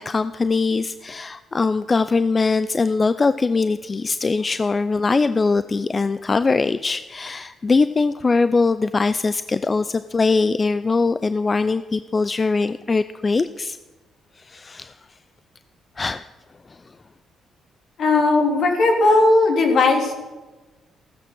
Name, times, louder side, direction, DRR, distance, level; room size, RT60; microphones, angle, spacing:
voice 1, 0.0-13.8 14.4-14.9 16.0-16.2 16.7-16.8, left 4 dB, 30° left, 13 dB, 0.5 m, -21 dB
voice 2, 18.0-20.1, left 2 dB, 65° left, 2 dB, 3.6 m, -17 dB
15.0 x 13.5 x 6.2 m, 1.2 s
cardioid pair, 90°, 0 cm